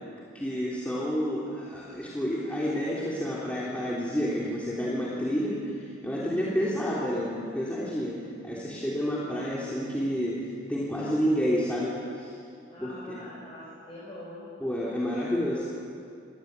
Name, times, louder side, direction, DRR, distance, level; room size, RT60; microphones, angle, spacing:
voice 1, 0.3-8.2 8.4-12.3 12.8-13.2 14.6-15.7, equal, 5° left, -7 dB, 3.3 m, -29 dB
voice 2, 6.3-6.6 12.7-14.5, left 1 dB, 25° left, -9 dB, 7.6 m, -44 dB
27.0 x 20.0 x 8.4 m, 2.5 s
head